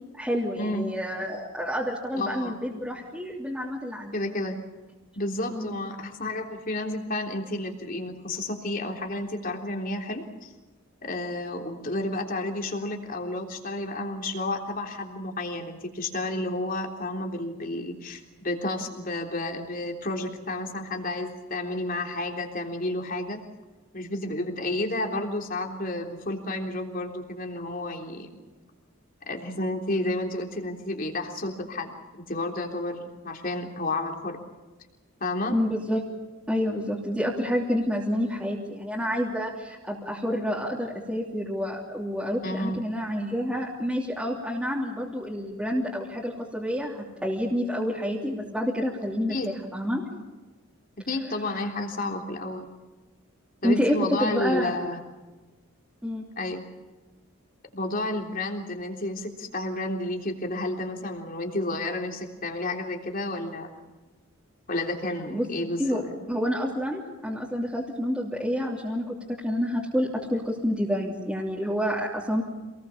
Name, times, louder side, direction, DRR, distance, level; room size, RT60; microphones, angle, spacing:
voice 1, 0.2-4.1 5.5-5.7 35.5-36.0 36.5-50.0 53.6-54.8 56.0-56.2 65.3-65.5 65.8-66.0 66.3-72.4, equal, 5° right, -5 dB, 3.0 m, -28 dB
voice 2, 2.2-2.6 4.1-4.5 5.2-10.5 11.0-23.4 23.9-28.3 29.3-31.9 32.3-34.4 35.2-35.5 42.4-42.8 49.3-49.5 51.1-52.7 53.6-55.0 56.4-56.6 57.7-63.7 64.7-66.1, left 2 dB, 40° left, 2 dB, 3.5 m, -31 dB
27.5 x 20.0 x 7.2 m, 1.2 s
head